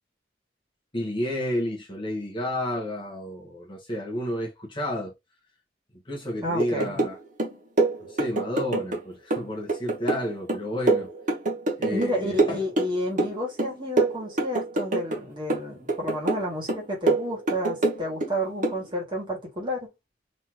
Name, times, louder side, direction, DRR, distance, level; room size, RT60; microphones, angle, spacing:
voice 1, 0.9-5.1 6.1-7.2 8.1-11.1 11.8-12.6, left 1 dB, 25° left, 1.6 m, -31 dB
voice 2, 6.4-7.0 11.9-19.9, equal, 25° right, 2.3 m, -31 dB
sound 1, 6.6-7.1 7.4-9.0 9.3-12.1 12.4-13.3 13.6-15.2 15.5-16.4 16.7-18.3 18.6-18.8, right 2 dB, 45° right, 1.3 m, -25 dB
4.1 x 3.7 x 3.0 m
head